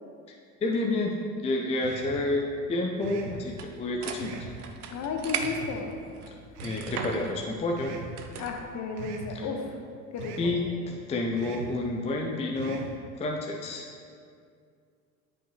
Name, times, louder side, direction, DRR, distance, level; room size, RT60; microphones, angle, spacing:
voice 1, 0.6-4.4 6.6-8.0 9.3-9.5 10.4-12.9 13.2-13.9, left 2 dB, 15° left, 0 dB, 0.5 m, -29 dB
sound 1, 1.8-2.2 3.0-3.4 4.2-4.6 5.4-5.8 6.5-6.9 7.8-8.1 9.0-9.3 10.2-10.5 11.4-11.7 12.5-12.9, right 5 dB, 60° right, 0.9 m, -41 dB
sound 2, 3.5-8.7, right 6 dB, 85° right, 0.6 m, -38 dB
voice 2, 4.9-5.9 8.4-9.8 10.1-10.5, left 4 dB, 40° left, 3 dB, 0.9 m, -33 dB
8.6 x 5.5 x 2.9 m, 2.3 s
hypercardioid pair, 75°, 44 cm